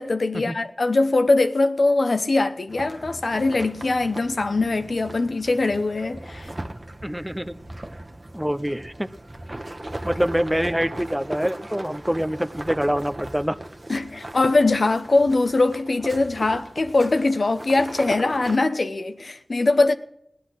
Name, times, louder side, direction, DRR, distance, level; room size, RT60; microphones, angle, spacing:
voice 1, 0.0-6.5 13.9-19.9, left 2 dB, 70° left, 0.9 m, -22 dB
sound 1, 2.7-18.6, right 1 dB, 40° right, 1.3 m, -38 dB
voice 2, 7.0-7.6 8.3-9.1 9.6-9.7 10.0-13.6, equal, 10° right, 0.8 m, -25 dB
17.0 x 10.5 x 6.3 m
wide cardioid pair, 50°, 0 cm